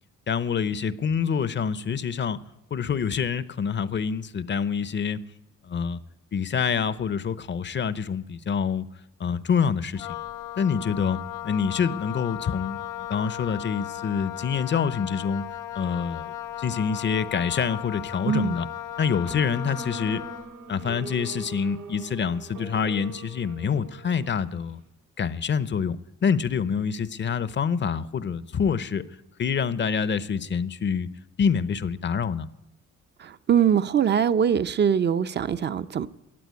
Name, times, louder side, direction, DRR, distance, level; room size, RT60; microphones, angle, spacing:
voice 1, 0.3-2.4 2.7-5.2 5.6-6.0 6.3-8.8 9.2-10.1 10.6-12.8 13.1-15.4 15.7-18.7 19.0-20.2 20.7-24.8 25.2-29.0 29.4-31.1 31.4-32.5, left 6 dB, 40° left, 0.7 m, -26 dB
Wind instrument woodwind instrument, 9.9-20.5, left 13 dB, 90° left, 0.6 m, -36 dB
voice 2, 18.2-18.6 33.2-36.1, right 8 dB, 35° right, 0.6 m, -22 dB
sound 1, 19.2-24.8, right 3 dB, 80° right, 5.0 m, -42 dB
15.0 x 8.7 x 9.4 m
cardioid pair, 90°, 30 cm